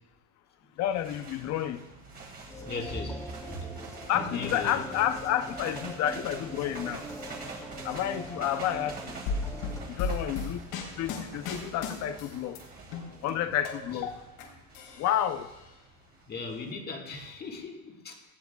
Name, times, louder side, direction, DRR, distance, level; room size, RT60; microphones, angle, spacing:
voice 1, 0.8-1.8 4.1-7.0 7.8-9.0 10.0-10.7 11.0-12.6 13.2-14.1 15.0-15.5, left 11 dB, 50° left, 0.6 m, -30 dB
sound 1, 0.8-16.7, right 3 dB, 25° right, 2.3 m, -46 dB
sound 2, 2.5-9.8, equal, 10° left, 1.9 m, -42 dB
voice 2, 2.6-3.2 3.6-3.7 4.1-4.9 13.9-14.0 16.3-18.2, left 4 dB, 25° left, 1.6 m, -38 dB
sound 3, 9.3-12.6 12.9-14.4 14.7-15.6, left 4 dB, 85° left, 3.6 m, -35 dB
18.5 x 15.0 x 2.3 m
cardioid pair, 170°, 36 cm